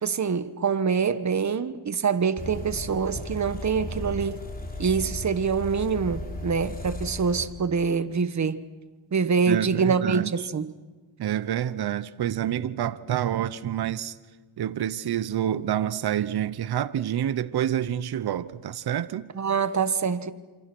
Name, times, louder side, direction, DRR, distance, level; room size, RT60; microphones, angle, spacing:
voice 1, 0.0-4.4 4.8-8.6 9.1-10.7 19.3-20.3, right 5 dB, 35° right, 1.4 m, -25 dB
sound 1, 2.4-7.5, left 1 dB, 15° left, 4.2 m, -35 dB
voice 2, 9.5-10.3 11.2-14.1 14.6-19.3, right 10 dB, 50° right, 1.0 m, -28 dB
27.0 x 27.0 x 6.2 m
cardioid pair, 95°, 49 cm